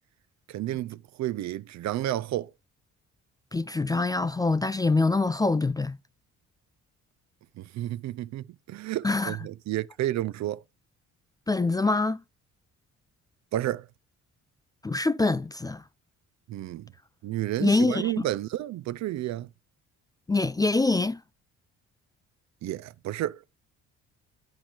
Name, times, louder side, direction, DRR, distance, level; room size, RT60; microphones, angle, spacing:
voice 1, 0.5-2.5 7.6-10.6 13.5-13.9 16.5-16.9 17.2-19.5 22.6-23.4, right 14 dB, 65° right, 0.5 m, -31 dB
voice 2, 3.5-6.0 9.0-9.4 11.5-12.2 14.8-15.8 17.6-18.2 20.3-21.2, left 3 dB, 15° left, 0.3 m, -24 dB
11.5 x 4.4 x 2.4 m
cardioid pair, 90°, 30 cm